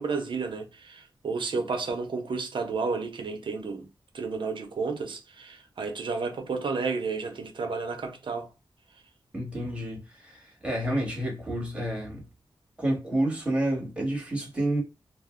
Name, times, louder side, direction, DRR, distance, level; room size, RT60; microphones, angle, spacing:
voice 1, 0.0-3.9 4.1-8.5, right 4 dB, 65° right, 0.7 m, -31 dB
voice 2, 9.3-12.2 12.8-14.8, right 1 dB, 10° right, 1.2 m, -29 dB
2.6 x 2.0 x 3.6 m
wide cardioid pair, 150°, 9 cm